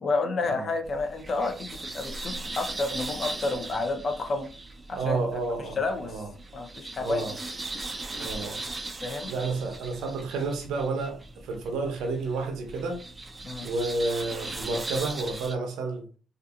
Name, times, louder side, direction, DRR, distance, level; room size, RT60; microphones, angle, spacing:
voice 1, 0.0-4.5 4.9-5.2 5.8-6.2 6.5-7.4 9.0-9.3 13.4-13.7, left 3 dB, 45° left, 0.5 m, -30 dB
sound 1, 0.8-15.5, right 2 dB, 25° right, 0.4 m, -39 dB
voice 2, 5.0-5.8 6.0-6.3 7.0-7.3 8.2-8.6 9.3-11.2 11.4-13.0 13.6-16.0, right 3 dB, 85° right, 0.6 m, -30 dB
2.7 x 2.4 x 2.4 m
cardioid pair, 90°, 0 cm